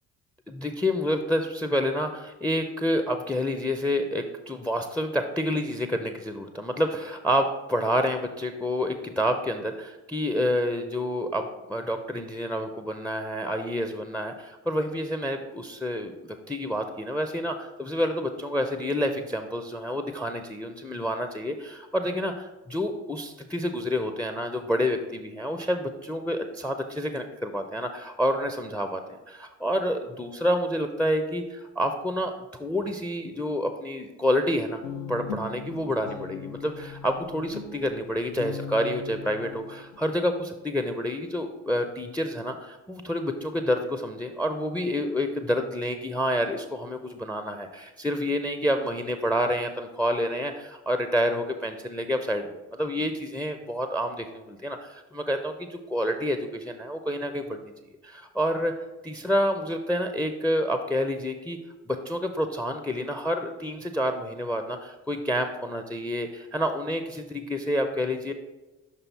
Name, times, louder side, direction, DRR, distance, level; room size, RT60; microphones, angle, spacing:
voice 1, 0.5-34.8 35.1-57.7 58.0-58.7 59.0-61.6 61.8-68.3, equal, 5° left, 7 dB, 0.6 m, -28 dB
Guitar, 34.8-40.0, left 6 dB, 65° left, 0.8 m, -39 dB
5.5 x 5.5 x 4.1 m, 1.1 s
hypercardioid pair, 50°, 40 cm